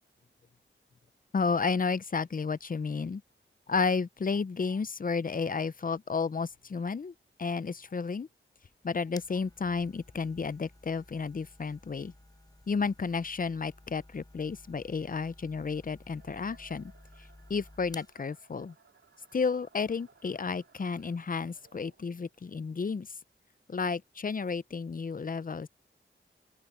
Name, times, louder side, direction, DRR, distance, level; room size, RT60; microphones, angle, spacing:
voice 1, 1.3-3.2 3.7-7.1 7.4-8.3 8.8-12.1 12.7-16.9 17.5-18.7 19.3-23.1 23.7-25.7, left 5 dB, 45° left, 0.6 m, -32 dB
sound 1, 8.6-18.2, left 1 dB, 20° left, 4.7 m, -55 dB
sound 2, 16.2-22.4, right 5 dB, 85° right, 3.4 m, -62 dB
open air
wide cardioid pair, 65°, 21 cm